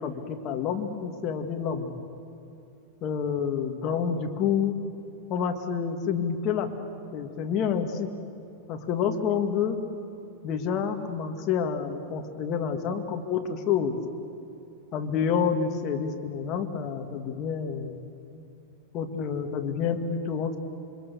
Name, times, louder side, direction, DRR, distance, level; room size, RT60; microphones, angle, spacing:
voice 1, 0.0-2.0 3.0-4.8 5.3-6.7 7.1-8.1 8.7-9.8 10.4-14.0 14.9-18.0 18.9-20.6, left 7 dB, 35° left, 5 dB, 1.9 m, -28 dB
28.0 x 23.0 x 7.0 m, 2.7 s
supercardioid pair, 150°, 0 cm